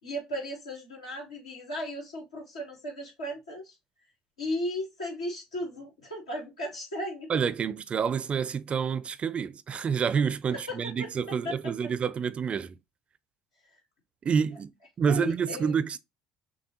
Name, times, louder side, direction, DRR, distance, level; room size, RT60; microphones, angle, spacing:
voice 1, 0.0-3.8 4.4-7.3 10.5-11.6 13.7-13.8 15.1-15.7, equal, 90° left, 1.8 m, -36 dB
voice 2, 7.3-12.8 14.2-14.7 15.0-16.0, right 6 dB, 35° right, 0.4 m, -28 dB
6.3 x 2.2 x 2.9 m
hypercardioid pair, 65°, 3 cm